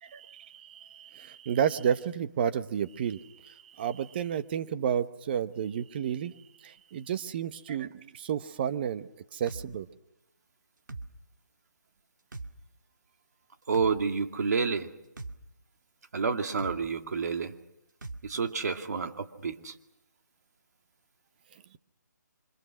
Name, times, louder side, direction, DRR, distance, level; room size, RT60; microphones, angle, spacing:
voice 1, 0.0-6.3 6.6-9.9, right 8 dB, 30° right, 11 dB, 1.0 m, -31 dB
sound 1, 9.5-9.7 10.9-11.1 12.3-12.5 13.7-13.9 15.2-15.4 16.6-16.8 18.0-18.2, right 3 dB, 85° right, 2.0 m, -39 dB
voice 2, 13.7-14.9 16.1-17.5 18.2-19.7, right 5 dB, 60° right, 6 dB, 2.2 m, -29 dB
28.0 x 25.5 x 6.3 m, 0.88 s
hypercardioid pair, 155°, 10 cm